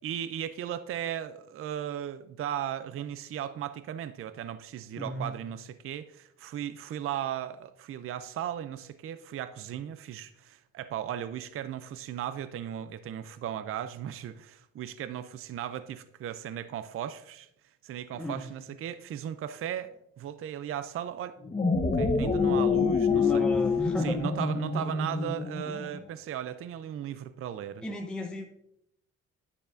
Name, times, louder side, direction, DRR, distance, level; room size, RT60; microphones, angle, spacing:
voice 1, 0.0-17.5 17.8-21.4 21.9-23.5 24.0-27.8, right 10 dB, 45° right, 12 dB, 0.4 m, -36 dB
voice 2, 5.0-5.3 18.2-18.5 23.1-24.2 27.8-28.5, left 1 dB, 5° left, 2 dB, 0.7 m, -34 dB
sound 1, 21.4-26.0, left 5 dB, 20° left, 1.0 m, -27 dB
9.8 x 6.8 x 2.6 m, 0.80 s
cardioid pair, 90°, 30 cm